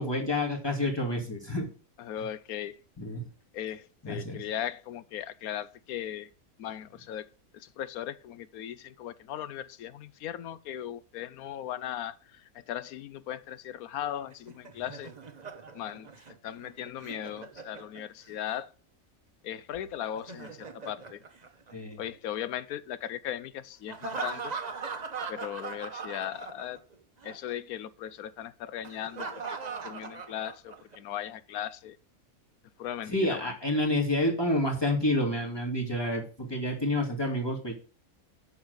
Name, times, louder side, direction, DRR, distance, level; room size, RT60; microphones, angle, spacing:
voice 1, 0.0-1.7 3.0-3.2 4.0-4.4 21.7-22.0 33.1-37.7, left 1 dB, 15° left, 2.6 m, -29 dB
voice 2, 2.0-2.8 3.5-6.3 6.6-7.3 7.6-12.2 12.7-15.1 15.7-16.1 16.4-18.7 19.4-20.5 20.8-21.2 22.0-24.5 25.3-26.8 27.2-29.4 29.8-32.0 32.8-33.5, left 11 dB, 85° left, 1.1 m, -37 dB
Laughter, 14.3-18.4 20.0-22.2 23.9-26.9 27.2-27.4 28.8-31.0, right 5 dB, 35° right, 0.9 m, -40 dB
8.3 x 6.3 x 6.4 m
omnidirectional pair, 1.5 m